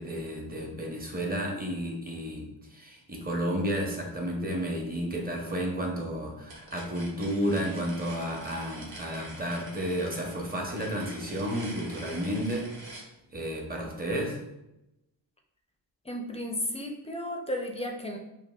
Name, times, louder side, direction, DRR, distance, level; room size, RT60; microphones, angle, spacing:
voice 1, 0.0-13.0 13.3-14.4, equal, 20° right, -1 dB, 0.7 m, -32 dB
sound 1, 6.5-13.1, right 2 dB, 55° right, 1.0 m, -46 dB
voice 2, 16.1-18.2, left 1 dB, 15° left, 2 dB, 0.4 m, -33 dB
5.2 x 2.1 x 2.3 m, 0.90 s
wide cardioid pair, 105°, 45 cm